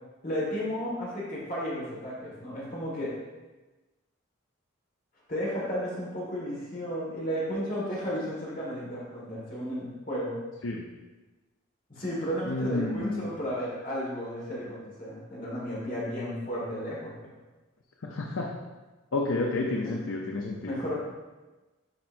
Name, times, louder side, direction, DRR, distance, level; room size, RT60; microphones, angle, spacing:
voice 1, 0.2-3.1 5.3-10.4 11.9-17.1 19.8-19.9 20.7-20.9, equal, 45° left, -5 dB, 1.7 m, -33 dB
voice 2, 12.5-13.3 18.0-18.5 19.1-20.8, left 2 dB, 80° left, 0 dB, 0.6 m, -30 dB
10.0 x 4.4 x 2.6 m, 1.2 s
head